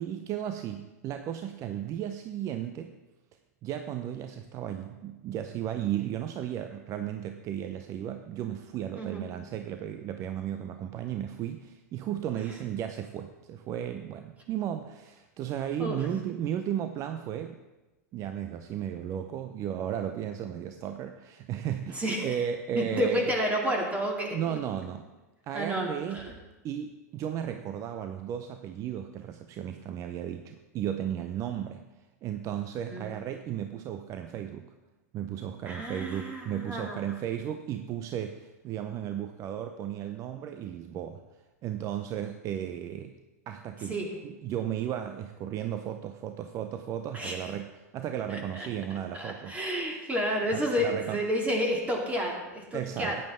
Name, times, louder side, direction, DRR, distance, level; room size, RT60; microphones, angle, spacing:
voice 1, 0.0-2.9 3.6-17.6 18.1-23.3 24.3-25.0 25.5-26.2 26.6-31.8 32.2-34.7 35.1-41.2 41.6-43.2 43.5-49.6 50.5-51.2 52.7-53.2, right 10 dB, 35° right, 8 dB, 0.7 m, -35 dB
voice 2, 21.9-22.4 22.7-24.6 25.5-26.3 32.9-33.1 35.7-37.0 43.9-44.1 47.1-47.4 48.3-48.7 49.2-53.2, equal, 15° right, 0 dB, 2.4 m, -30 dB
13.5 x 9.5 x 3.7 m, 1.1 s
hypercardioid pair, 100°, 9 cm